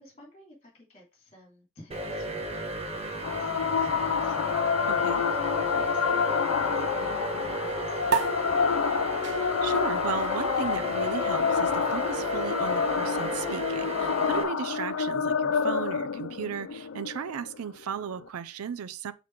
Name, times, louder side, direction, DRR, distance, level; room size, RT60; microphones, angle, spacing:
voice 1, 0.0-8.8, left 1 dB, 30° left, 2.7 m, -51 dB
sound 1, 1.9-14.4, right 1 dB, 30° right, 1.0 m, -34 dB
sound 2, 3.2-18.2, left 6 dB, 65° left, 0.4 m, -28 dB
voice 2, 4.9-5.2 9.4-19.1, right 7 dB, 85° right, 0.4 m, -36 dB
sound 3, 8.1-14.9, right 7 dB, 50° right, 0.8 m, -37 dB
5.9 x 4.1 x 4.6 m
head